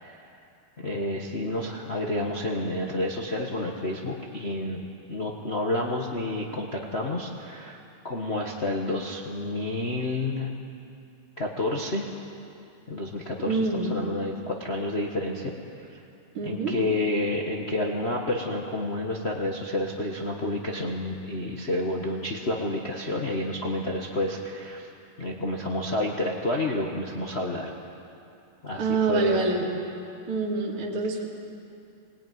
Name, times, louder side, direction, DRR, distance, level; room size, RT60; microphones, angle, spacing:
voice 1, 0.8-10.5 11.4-12.1 12.9-15.5 15.9-16.0 16.4-24.9 25.2-27.7 28.6-29.4, left 1 dB, 90° left, -1 dB, 0.5 m, -30 dB
voice 2, 13.5-14.0 16.3-16.8 28.8-29.7 30.3-31.3, right 3 dB, 45° right, -3 dB, 2.9 m, -26 dB
20.5 x 20.5 x 9.4 m, 2.7 s
omnidirectional pair, 3.7 m